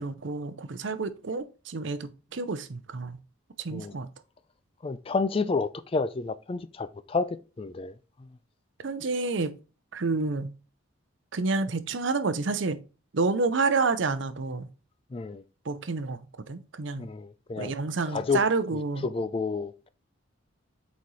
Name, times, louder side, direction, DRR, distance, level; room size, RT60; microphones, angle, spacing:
voice 1, 0.0-3.2 3.6-4.1 8.8-9.5 9.9-10.5 11.3-12.8 13.1-14.7 15.6-17.1 17.6-19.1, right 3 dB, 65° right, 0.6 m, -29 dB
voice 2, 4.8-7.9 8.2-8.3 15.1-15.4 17.0-17.7 18.1-18.4 18.7-19.9, left 4 dB, 30° left, 0.3 m, -30 dB
8.4 x 4.1 x 3.1 m
head